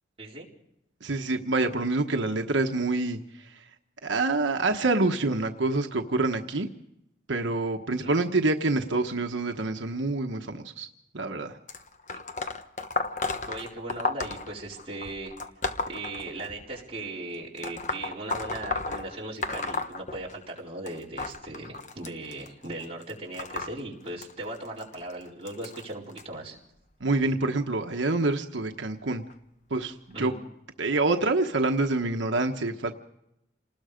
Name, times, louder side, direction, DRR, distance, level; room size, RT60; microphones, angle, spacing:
voice 1, 1.0-3.6 4.0-6.7 7.3-10.9 11.1-11.6 27.0-29.2 29.7-30.3 30.8-32.9, right 2 dB, 85° right, 4 dB, 1.2 m, -27 dB
sound 1, 11.7-16.8 17.6-20.6 20.9-26.2 27.0-27.3 28.3-28.4 29.3-29.4 30.1-30.2, left 3 dB, 40° left, 1.2 m, -34 dB
voice 2, 13.5-15.3 15.9-26.6 30.1-30.3, right 2 dB, 30° right, -4 dB, 4.4 m, -38 dB
28.0 x 19.5 x 5.2 m, 0.83 s
head